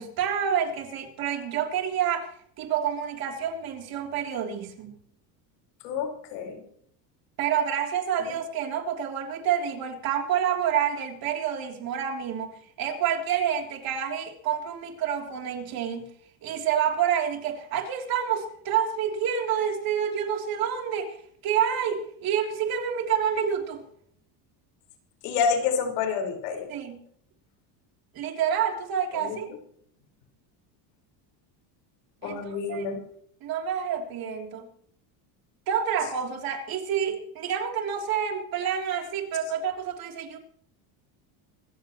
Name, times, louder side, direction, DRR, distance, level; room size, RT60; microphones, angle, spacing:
voice 1, 0.0-2.3 2.6-5.0 7.4-16.1 16.4-21.2 21.4-23.8 26.7-27.0 28.1-29.5 32.2-32.9 33.4-34.7 35.7-40.4, right 8 dB, 45° right, 3 dB, 3.4 m, -28 dB
voice 2, 5.8-6.6 25.2-26.7 29.2-29.4 32.2-33.0, left 6 dB, 85° left, 3 dB, 5.0 m, -28 dB
25.5 x 15.0 x 3.1 m, 0.65 s
cardioid pair, 150°, 48 cm